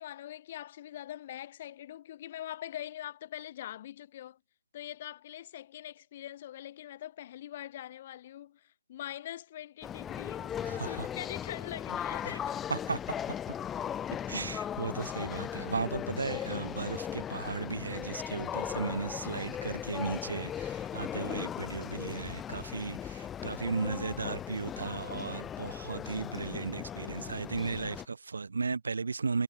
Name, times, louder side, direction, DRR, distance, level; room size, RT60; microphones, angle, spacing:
voice 1, 0.0-4.4 4.7-8.6 8.9-12.6, left 12 dB, 40° left, 1.4 m, -43 dB
sound 1, 9.8-28.1, left 9 dB, 10° left, 0.9 m, -38 dB
voice 2, 10.6-11.1 12.2-12.4 12.7-13.0 14.3-29.4, right 4 dB, 70° right, 0.8 m, -35 dB
figure-of-eight pair, 140°, 0 cm